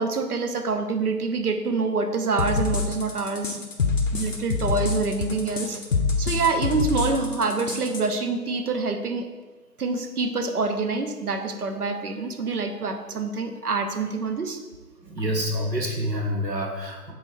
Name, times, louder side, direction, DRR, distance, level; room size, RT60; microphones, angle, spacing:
voice 1, 0.0-3.6 4.1-5.8 6.2-9.3 9.8-14.6, right 4 dB, 65° right, 6 dB, 0.6 m, -26 dB
sound 1, 2.4-8.0, left 4 dB, 55° left, 0.6 m, -25 dB
voice 2, 15.1-17.1, equal, 85° right, 1 dB, 1.0 m, -27 dB
3.7 x 3.0 x 4.3 m, 1.4 s
figure-of-eight pair, 160°, 48 cm